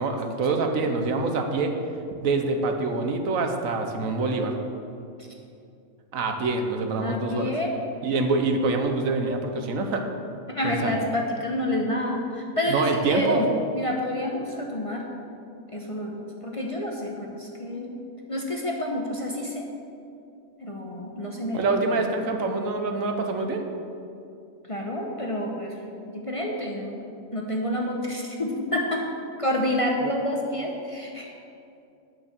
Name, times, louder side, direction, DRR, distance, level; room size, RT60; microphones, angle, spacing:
voice 1, 0.0-1.7 2.2-4.5 6.1-7.5 8.0-10.0 10.6-11.0 12.7-13.5 21.5-23.7, right 3 dB, 75° right, 5 dB, 1.3 m, -25 dB
voice 2, 7.0-7.7 10.5-13.5 13.7-15.0 15.7-16.1 16.4-17.9 18.3-19.6 20.6-22.0 24.7-25.8 26.0-27.0 27.3-29.0 29.4-31.3, left 1 dB, 30° left, -1 dB, 0.8 m, -28 dB
9.2 x 6.2 x 6.6 m, 2.6 s
omnidirectional pair, 1.4 m